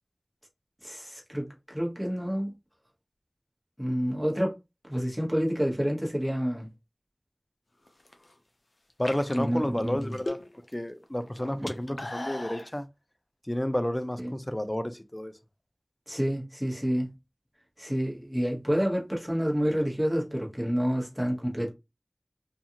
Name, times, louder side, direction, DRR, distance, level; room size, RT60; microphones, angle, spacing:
voice 1, 0.8-2.5 3.8-4.5 4.9-6.7 9.3-10.1 11.5-11.7 14.2-14.3 16.1-17.1 17.8-21.7, equal, 5° right, 1.1 m, -29 dB
sound 1, 7.9-8.3 8.9-10.7 11.0-12.7, left 1 dB, 80° left, 0.5 m, -38 dB
voice 2, 9.0-10.4 10.7-12.9 13.5-15.3, left 1 dB, 25° left, 0.4 m, -31 dB
2.5 x 2.4 x 2.8 m
wide cardioid pair, 40°, 0 cm